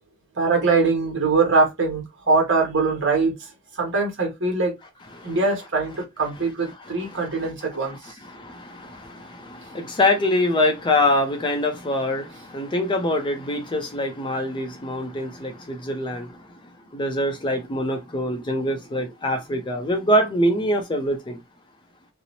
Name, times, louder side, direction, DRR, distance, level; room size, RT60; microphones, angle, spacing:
voice 1, 0.3-4.7 5.2-8.2, right 3 dB, 60° right, 1.2 m, -22 dB
voice 2, 8.3-16.4 16.9-21.4, left 1 dB, 20° left, 0.4 m, -24 dB
2.7 x 2.0 x 2.8 m
head